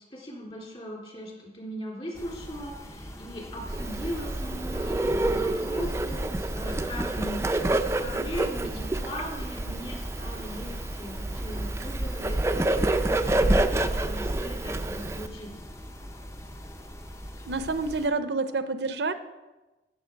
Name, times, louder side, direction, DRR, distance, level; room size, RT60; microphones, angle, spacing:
voice 1, 0.1-7.4 8.0-15.5, equal, 35° left, -3 dB, 3.3 m, -39 dB
sound 1, 2.1-18.1, equal, 15° left, 0.7 m, -43 dB
Bird, 3.7-15.3, right 1 dB, 15° right, 0.4 m, -28 dB
voice 2, 17.5-19.1, right 3 dB, 75° right, 11 dB, 0.6 m, -28 dB
15.5 x 6.6 x 4.6 m, 1.1 s
head